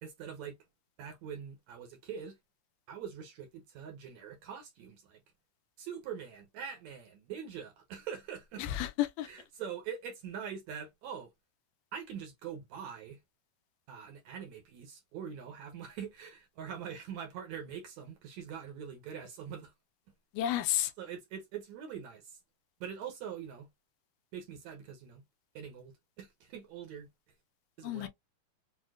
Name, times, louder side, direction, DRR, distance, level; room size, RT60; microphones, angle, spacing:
voice 1, 0.0-0.6 1.0-2.4 2.9-5.2 5.8-8.7 9.2-11.3 11.9-13.2 13.9-19.7 21.0-22.4 22.8-23.7 24.3-25.2 25.5-27.1 27.8-28.1, right 8 dB, 75° right, 1.7 m, -43 dB
voice 2, 8.6-9.3 20.3-20.9 27.8-28.1, left 12 dB, 80° left, 2.1 m, -31 dB
6.2 x 2.2 x 2.4 m
omnidirectional pair, 3.9 m